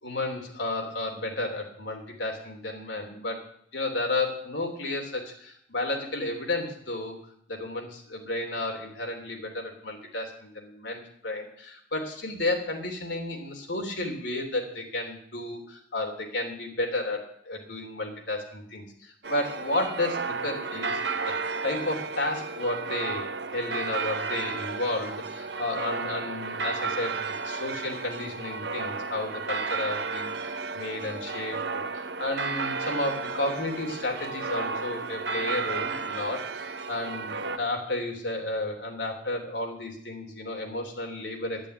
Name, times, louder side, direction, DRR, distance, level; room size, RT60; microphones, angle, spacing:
voice 1, 0.0-3.4 3.7-7.2 7.5-21.0 21.6-23.3 23.5-41.6, left 2 dB, 80° left, 2 dB, 3.3 m, -32 dB
sound 1, 19.2-37.6, right 4 dB, 70° right, 0.9 m, -33 dB
10.5 x 10.0 x 9.1 m, 0.66 s
head